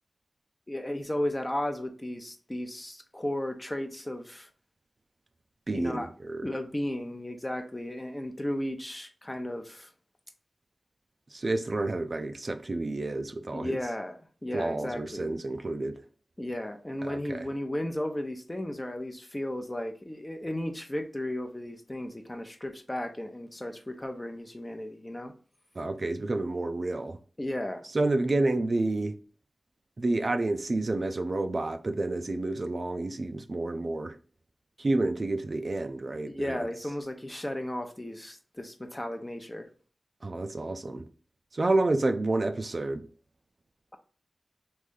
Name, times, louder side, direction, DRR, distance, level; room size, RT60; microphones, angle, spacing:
voice 1, 0.7-4.5 5.7-6.1 6.4-9.9 13.5-15.4 16.4-25.3 27.4-27.8 36.3-39.7, left 1 dB, 20° left, 0.6 m, -34 dB
voice 2, 5.7-6.5 11.3-13.8 14.5-16.0 17.0-17.5 25.8-27.2 27.9-29.1 30.0-34.2 34.8-36.7 40.2-41.1 41.5-43.1, right 2 dB, 50° right, 0.4 m, -29 dB
3.2 x 2.6 x 3.6 m
wide cardioid pair, 65°, 0 cm